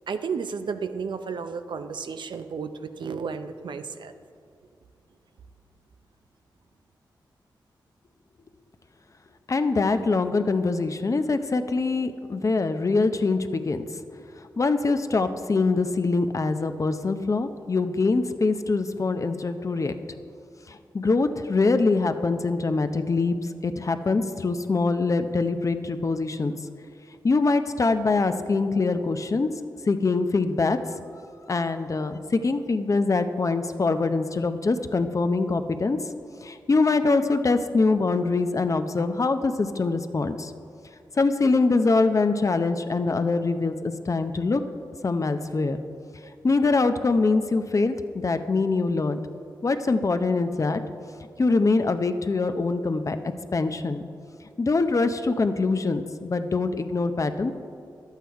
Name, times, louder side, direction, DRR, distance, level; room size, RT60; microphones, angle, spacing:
voice 1, 0.1-4.1, right 5 dB, 70° right, 9 dB, 0.6 m, -32 dB
voice 2, 9.5-13.8 14.6-20.0 20.7-26.5 27.2-29.5 29.9-30.8 31.5-36.0 36.4-40.5 41.2-44.6 45.0-45.8 46.4-49.2 49.6-50.8 51.4-53.2 53.5-54.0 54.6-57.5, left 3 dB, 40° left, 9 dB, 0.6 m, -24 dB
11.0 x 8.2 x 4.6 m, 2.4 s
cardioid pair, 60°, 8 cm